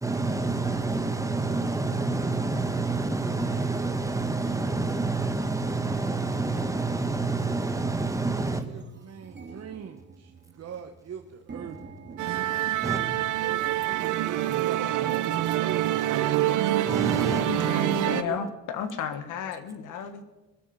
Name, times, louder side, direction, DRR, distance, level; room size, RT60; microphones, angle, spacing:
voice 1, 0.0-8.7 12.8-13.0 16.9-17.4, right 3 dB, 10° right, 6 dB, 1.7 m, -28 dB
voice 2, 8.6-11.8 12.8-15.9 17.2-18.4, right 7 dB, 55° right, 5 dB, 1.2 m, -41 dB
sound 1, 8.7-18.0, right 4 dB, 35° right, 1.9 m, -49 dB
Musical instrument, 12.2-18.2, right 13 dB, 85° right, 0.9 m, -26 dB
voice 3, 17.4-20.2, left 7 dB, 90° left, 10 dB, 1.5 m, -33 dB
22.5 x 7.8 x 7.0 m, 1.1 s
cardioid pair, 90°, 30 cm